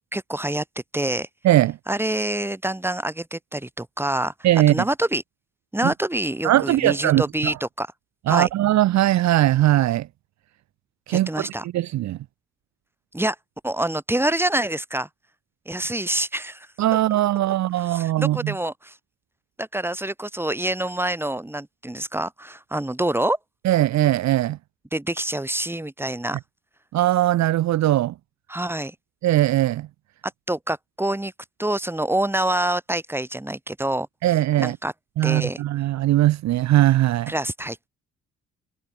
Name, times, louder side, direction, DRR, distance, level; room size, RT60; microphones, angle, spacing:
voice 1, 0.1-0.6 0.9-1.3 1.9-4.3 4.7-5.2 5.7-7.9 8.3-8.5 11.1-11.6 13.1-13.4 13.6-15.1 15.7-16.7 17.9-19.0 19.6-23.4 24.9-26.4 28.5-29.0 30.5-31.3 31.6-34.1 34.6-34.9 35.2-35.6 37.3-37.9, right 1 dB, 10° right, 3.4 m, -26 dB
voice 2, 1.4-1.8 4.4-4.8 5.8-5.9 6.4-7.5 8.3-10.1 11.1-11.5 11.7-12.2 16.8-18.5 23.6-24.6 26.9-28.1 29.2-29.9 34.2-34.8 35.2-37.3, right 14 dB, 65° right, 0.6 m, -20 dB
cardioid pair, 90°, 30 cm